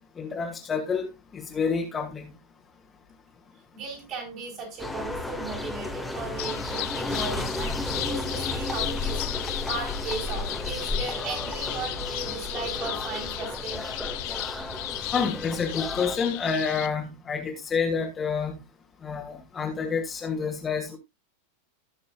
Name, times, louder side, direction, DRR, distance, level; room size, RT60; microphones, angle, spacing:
voice 1, 0.2-1.1 1.3-2.3 15.1-18.6 19.0-21.0, left 5 dB, 20° left, 2.3 m, -28 dB
voice 2, 3.7-14.1, right 4 dB, 35° right, 5.2 m, -37 dB
sound 1, 4.8-16.2, left 2 dB, ahead, 2.0 m, -33 dB
sound 2, 6.4-16.9, left 17 dB, 45° left, 0.8 m, -35 dB
17.5 x 6.7 x 2.4 m
figure-of-eight pair, 90°, 0 cm